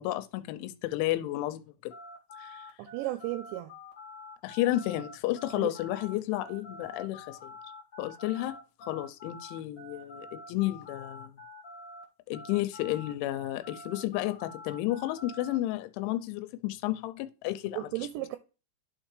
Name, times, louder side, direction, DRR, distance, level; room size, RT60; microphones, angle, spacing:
voice 1, 0.0-1.9 2.4-2.6 4.4-7.5 8.0-11.4 12.3-17.9, left 15 dB, 85° left, 3.0 m, -32 dB
sound 1, 1.9-12.0 12.3-15.6, left 2 dB, 35° left, 1.9 m, -47 dB
voice 2, 2.8-3.7 5.6-5.7 17.8-18.4, right 17 dB, 85° right, 2.7 m, -34 dB
11.0 x 4.4 x 3.2 m
omnidirectional pair, 5.4 m